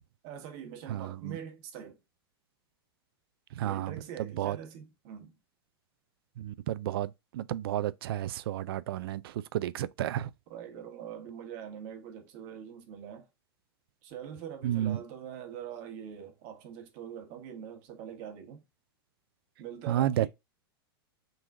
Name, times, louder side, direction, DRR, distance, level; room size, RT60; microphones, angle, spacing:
voice 1, 0.2-2.0 3.6-5.4 10.5-13.3 14.0-18.6 19.6-20.3, right 9 dB, 50° right, 1.3 m, -43 dB
voice 2, 0.9-1.4 3.6-4.6 6.4-10.3 14.6-15.0 19.9-20.3, right 12 dB, 70° right, 0.4 m, -32 dB
3.9 x 3.1 x 3.6 m
hypercardioid pair, 110°, 13 cm